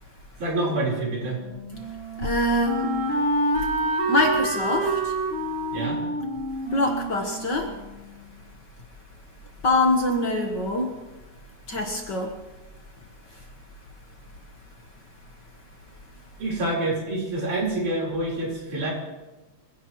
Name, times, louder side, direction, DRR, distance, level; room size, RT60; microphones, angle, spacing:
voice 1, 0.4-1.4 5.7-6.0 16.4-18.9, right 2 dB, 90° right, -3 dB, 6.0 m, -27 dB
Wind instrument woodwind instrument, 1.3-8.2, right 2 dB, 20° right, 2.9 m, -28 dB
voice 2, 2.2-3.0 3.6-3.7 4.1-5.2 6.7-7.7 9.6-10.9 11.7-12.3, left 2 dB, 45° left, 2 dB, 1.7 m, -24 dB
26.0 x 16.5 x 3.2 m, 1.1 s
omnidirectional pair, 3.4 m